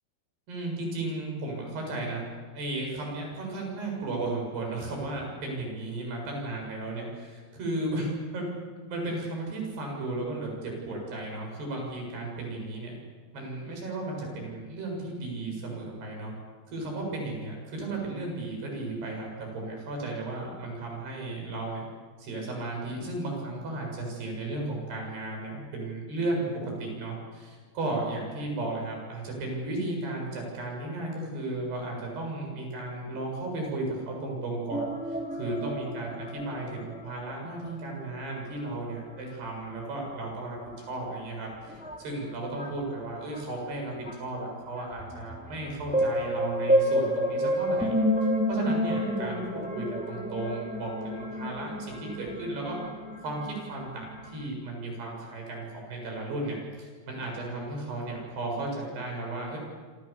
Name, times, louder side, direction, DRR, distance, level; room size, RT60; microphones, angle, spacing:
voice 1, 0.5-2.2 2.5-8.1 8.3-8.5 8.9-13.0 13.3-16.3 16.7-21.9 22.2-48.0 48.5-52.8 53.2-59.6, right 2 dB, 65° right, 0 dB, 9.4 m, -34 dB
sound 1, 34.7-37.3 37.6-38.0 38.3-38.6 39.2-39.3 40.5-40.6 41.4-41.5 41.7-42.8 43.3-43.6 44.1-44.2 44.8-54.4, equal, ahead, 2.6 m, -30 dB
27.5 x 27.0 x 7.2 m, 1.5 s
omnidirectional pair, 5.0 m